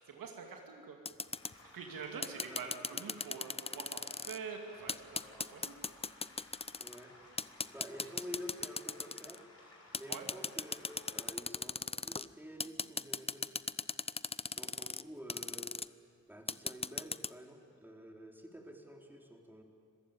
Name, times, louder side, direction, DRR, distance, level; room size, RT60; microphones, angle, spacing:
voice 1, 0.1-1.0 1.7-5.7 10.1-10.2, right 5 dB, 75° right, 2 dB, 2.5 m, -45 dB
sound 1, 1.1-11.3, left 2 dB, 45° left, 6.8 m, -58 dB
sound 2, 1.1-1.5 2.2-4.4 4.9-7.0 7.4-9.4 9.9-12.3 12.6-15.0 15.3-15.9 16.5-17.3, left 4 dB, 15° left, 0.6 m, -37 dB
voice 2, 2.3-2.8 3.1-3.2 6.8-7.1 7.7-9.4 9.9-13.5 14.5-15.7 16.3-19.6, equal, 5° right, 1 dB, 4.1 m, -49 dB
26.5 x 15.0 x 9.1 m, 2.3 s
supercardioid pair, 45°, 35 cm